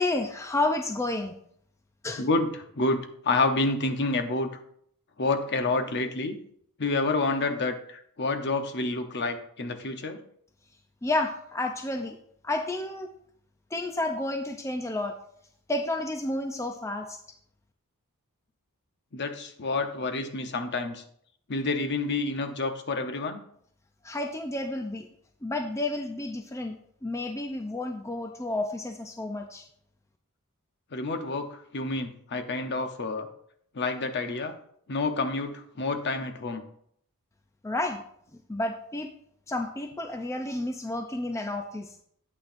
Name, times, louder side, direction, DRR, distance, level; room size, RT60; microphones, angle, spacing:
voice 1, 0.0-1.4 2.0-2.3 11.0-12.2 12.4-13.1 13.7-15.2 15.7-17.2 24.0-25.1 25.4-29.7 37.6-38.0 38.5-39.1 39.5-42.0, left 2 dB, 15° left, 4 dB, 0.5 m, -31 dB
voice 2, 2.2-4.5 5.2-6.4 6.8-10.2 19.1-21.0 21.5-23.4 30.9-33.3 33.7-34.6 34.9-36.6, left 3 dB, 50° left, 7 dB, 0.8 m, -28 dB
8.6 x 8.6 x 2.6 m, 0.67 s
head